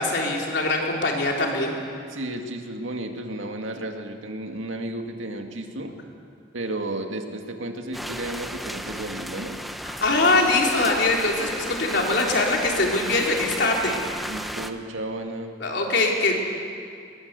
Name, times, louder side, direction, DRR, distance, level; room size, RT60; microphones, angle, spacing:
voice 1, 0.0-1.7 9.8-13.9 15.6-16.3, left 2 dB, 60° left, 0 dB, 3.8 m, -22 dB
voice 2, 2.1-5.9 6.5-9.6 14.3-15.6, right 1 dB, 90° right, 4 dB, 2.1 m, -33 dB
sound 1, 7.9-14.7, equal, ahead, 0.7 m, -34 dB
23.0 x 20.0 x 8.2 m, 2.4 s
head